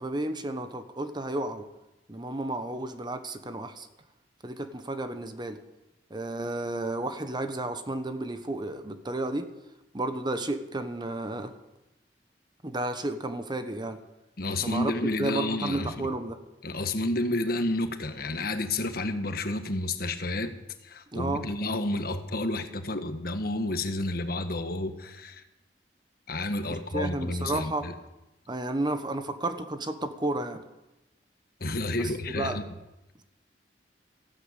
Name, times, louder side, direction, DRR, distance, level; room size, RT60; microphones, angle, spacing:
voice 1, 0.0-1.7 2.1-3.9 4.4-5.6 6.1-9.5 9.9-11.5 12.6-14.0 14.6-14.9 15.2-16.4 21.1-21.4 26.7-27.9 28.5-30.6 31.9-32.6, right 2 dB, 25° right, 9 dB, 1.2 m, -32 dB
voice 2, 14.4-16.1 16.6-20.5 20.8-25.4 26.3-27.9 31.6-32.6, left 2 dB, 60° left, 8 dB, 1.5 m, -30 dB
15.0 x 11.5 x 8.3 m, 0.97 s
head